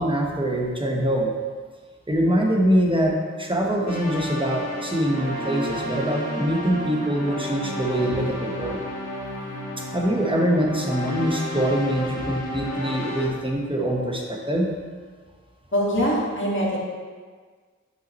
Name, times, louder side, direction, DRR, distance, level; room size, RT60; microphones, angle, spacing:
voice 1, 0.0-1.3 2.1-8.8 9.8-14.7, equal, 15° right, -1 dB, 1.2 m, -24 dB
sound 1, 3.9-13.3, left 1 dB, 60° left, 1.6 m, -32 dB
voice 2, 15.7-16.8, equal, 40° left, -6 dB, 2.0 m, -23 dB
8.9 x 5.5 x 3.1 m, 1.5 s
wide cardioid pair, 40°, 30 cm